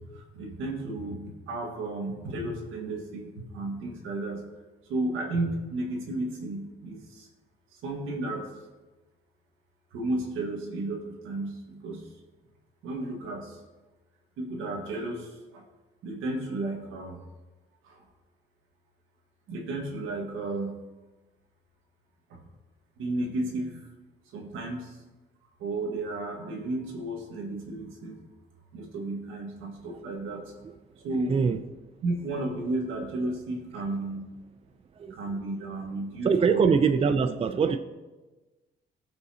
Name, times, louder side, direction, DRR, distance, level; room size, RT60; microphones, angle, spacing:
voice 1, 0.1-4.4 4.9-7.3 7.7-8.5 9.9-12.1 12.8-13.6 14.4-15.6 16.0-17.2 17.8-18.0 19.5-20.8 22.3-22.4 23.0-23.8 24.3-25.0 25.6-28.2 28.7-30.5 30.9-31.4 32.0-34.2 35.1-36.7, right 2 dB, 90° right, 1 dB, 1.6 m, -33 dB
voice 2, 31.3-31.6 35.0-35.2 36.2-37.8, right 5 dB, 30° right, 8 dB, 0.4 m, -23 dB
15.5 x 5.6 x 2.8 m, 1.2 s
cardioid pair, 90°, 20 cm